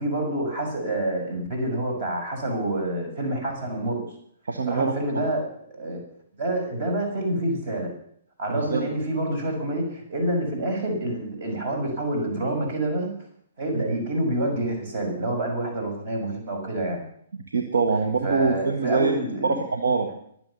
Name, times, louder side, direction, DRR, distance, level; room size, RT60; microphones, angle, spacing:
voice 1, 0.0-4.1 4.7-5.5 5.7-6.0 6.4-7.9 8.4-13.1 13.6-17.0 18.2-19.6, right 1 dB, 40° right, 3 dB, 6.0 m, -27 dB
voice 2, 4.4-5.2 8.5-8.9 13.7-13.8 17.5-19.2 19.4-20.1, right 4 dB, 60° right, 4 dB, 1.6 m, -24 dB
23.0 x 7.9 x 7.0 m, 0.67 s
figure-of-eight pair, 120°, 0 cm